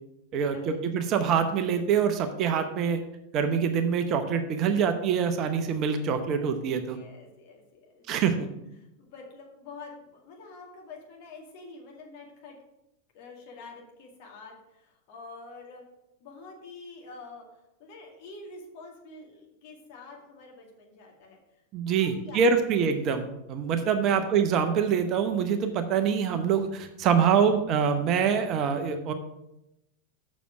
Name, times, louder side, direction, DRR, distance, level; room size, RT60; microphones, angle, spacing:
voice 1, 0.3-3.0 3.3-7.0 8.1-8.4 21.7-29.1, right 7 dB, 35° right, 7 dB, 0.8 m, -25 dB
voice 2, 6.9-8.5 9.0-12.6 13.1-15.8 16.2-17.4 17.8-21.4 21.8-22.6 22.9-23.2 24.0-24.3, left 3 dB, 45° left, 0 dB, 2.1 m, -47 dB
7.1 x 6.3 x 5.9 m, 0.89 s
figure-of-eight pair, 90°, 0 cm